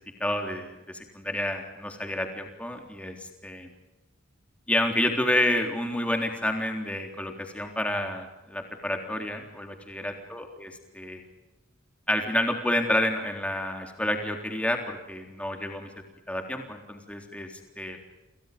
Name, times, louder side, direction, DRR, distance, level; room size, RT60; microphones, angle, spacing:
voice 1, 0.2-3.2 3.4-3.7 4.7-10.7 10.9-11.2 12.1-15.9 16.3-17.5 17.8-18.0, left 1 dB, 5° left, 3 dB, 3.6 m, -29 dB
28.5 x 28.5 x 5.3 m, 1.0 s
head